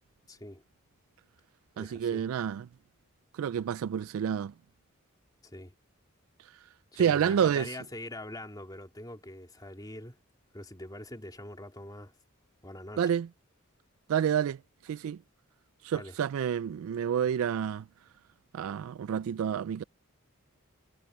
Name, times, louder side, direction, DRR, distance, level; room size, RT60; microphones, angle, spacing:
voice 1, 0.3-0.6 1.7-2.2 5.4-5.7 6.9-10.2 10.5-12.1 12.6-13.0 15.9-16.1, left 1 dB, 20° left, 2.8 m, -43 dB
voice 2, 1.8-2.7 3.3-4.5 7.0-7.7 13.0-13.3 14.1-15.2 15.8-17.8 18.5-19.8, right 8 dB, 75° right, 0.3 m, -29 dB
head